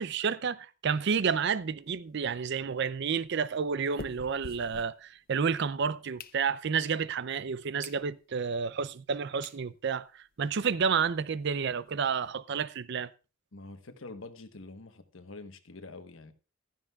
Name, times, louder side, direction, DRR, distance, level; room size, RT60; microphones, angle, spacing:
voice 1, 0.0-13.1, right 6 dB, 60° right, 0.5 m, -30 dB
sound 1, 1.6-5.5 5.9-6.9 7.4-7.5 7.8-8.0 8.5-8.6 9.1-9.2 9.4-9.6 10.1-10.2 10.3-10.5 10.7-10.8 11.2-12.3, left 4 dB, 45° left, 0.6 m, -49 dB
voice 2, 13.5-16.3, left 3 dB, 75° left, 1.2 m, -46 dB
15.0 x 13.0 x 2.4 m
head